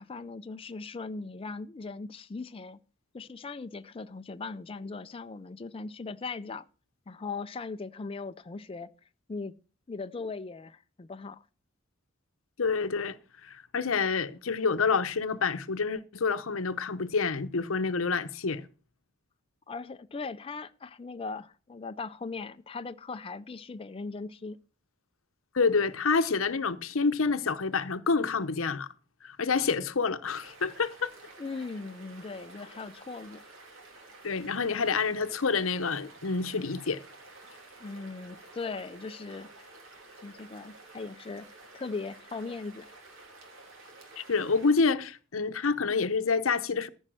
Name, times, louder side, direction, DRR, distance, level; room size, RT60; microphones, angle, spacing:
voice 1, 0.0-2.8 3.1-6.7 7.1-8.9 9.3-9.6 9.9-11.4 19.7-24.6 31.4-33.4 37.8-39.7 40.2-41.5 41.7-42.9, left 4 dB, 30° left, 0.4 m, -39 dB
voice 2, 12.6-13.2 13.4-18.6 25.5-28.9 29.2-31.1 34.2-37.0 44.2-46.9, left 4 dB, 90° left, 0.8 m, -28 dB
sound 1, 30.2-44.8, right 2 dB, 75° right, 3.0 m, -51 dB
14.0 x 5.4 x 6.2 m
head